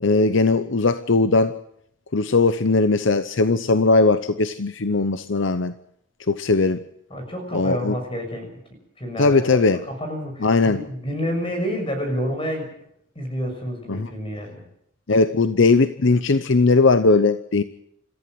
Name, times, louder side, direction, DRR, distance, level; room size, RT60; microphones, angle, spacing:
voice 1, 0.0-1.5 2.1-5.7 6.3-6.8 7.5-8.0 9.2-9.8 10.4-10.8 13.9-14.1 15.1-17.6, left 3 dB, 65° left, 12 dB, 0.8 m, -19 dB
voice 2, 7.1-8.5 9.0-12.7 13.1-14.6, equal, 25° left, 4 dB, 6.4 m, -29 dB
27.0 x 14.5 x 7.8 m, 0.72 s
head